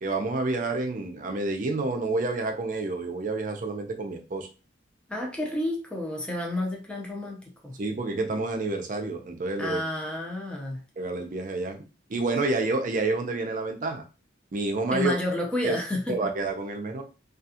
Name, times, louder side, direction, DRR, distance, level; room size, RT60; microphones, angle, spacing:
voice 1, 0.0-4.5 7.8-9.8 11.0-11.8 12.1-14.0 14.5-15.1 15.6-15.7 16.1-17.0, right 3 dB, 45° right, 4 dB, 0.5 m, -29 dB
voice 2, 5.1-7.7 9.6-10.8 14.9-16.2, left 1 dB, 5° left, 0 dB, 0.5 m, -30 dB
2.4 x 2.3 x 2.7 m, 0.33 s
head